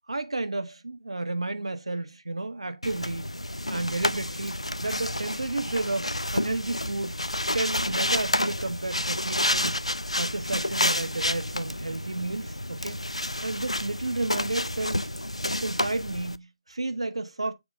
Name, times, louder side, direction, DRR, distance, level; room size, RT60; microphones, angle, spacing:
voice 1, 0.1-3.3 3.7-7.1 7.5-9.8 10.1-13.0 13.4-15.1 15.6-17.5, right 2 dB, 75° right, 1.2 m, -32 dB
sound 1, 2.8-16.4, left 1 dB, 90° left, 0.5 m, -30 dB
6.9 x 3.7 x 5.0 m
figure-of-eight pair, 150°, 3 cm